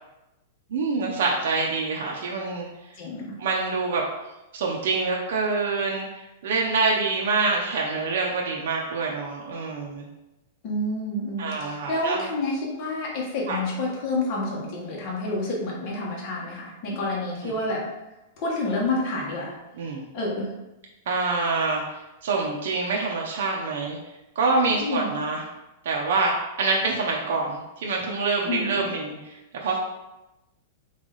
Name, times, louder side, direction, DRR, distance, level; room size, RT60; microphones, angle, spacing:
voice 1, 0.7-2.7 3.4-4.0 4.5-10.1 11.4-12.3 13.5-13.6 17.4-17.5 19.8-20.1 21.1-21.8 22.2-24.0 24.4-25.4 25.8-29.4 29.6-29.8, right 3 dB, 70° right, -1 dB, 0.7 m, -26 dB
voice 2, 2.9-3.4 10.6-17.8 18.4-19.5 20.1-20.5 24.8-25.1 28.5-28.9, left 2 dB, 40° left, -4 dB, 1.3 m, -29 dB
3.6 x 3.3 x 4.0 m, 0.99 s
supercardioid pair, 155°, 0 cm